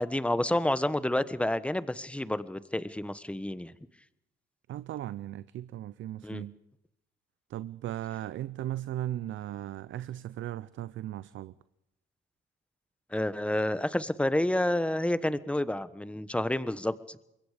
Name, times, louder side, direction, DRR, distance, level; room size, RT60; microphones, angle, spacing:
voice 1, 0.0-3.7 6.2-6.4 13.1-17.2, left 1 dB, 5° left, 1.2 m, -29 dB
voice 2, 4.7-6.6 7.5-11.5, right 13 dB, 75° right, 0.7 m, -37 dB
25.0 x 22.0 x 5.1 m
cardioid pair, 90°, 20 cm